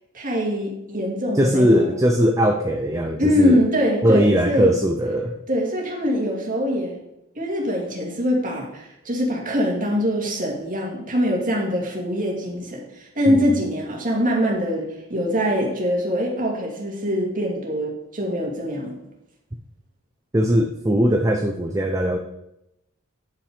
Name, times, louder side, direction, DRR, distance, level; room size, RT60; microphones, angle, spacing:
voice 1, 0.1-1.9 3.2-4.7 5.5-7.0 7.4-19.0, equal, 40° right, -1 dB, 2.3 m, -23 dB
voice 2, 1.3-3.6 4.0-5.3 13.3-13.4 20.3-22.2, equal, 15° right, 4 dB, 0.5 m, -20 dB
10.0 x 5.7 x 5.0 m, 0.87 s
head